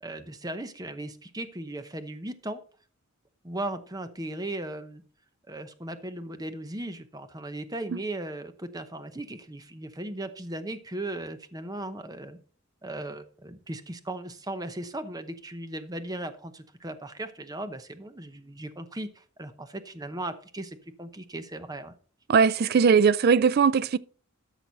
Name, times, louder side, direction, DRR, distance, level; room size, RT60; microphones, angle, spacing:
voice 1, 0.0-2.6 3.4-5.0 5.5-12.4 12.8-21.9, right 1 dB, 20° right, 0.8 m, -37 dB
voice 2, 22.3-24.0, right 6 dB, 50° right, 0.4 m, -20 dB
13.0 x 6.0 x 4.0 m
head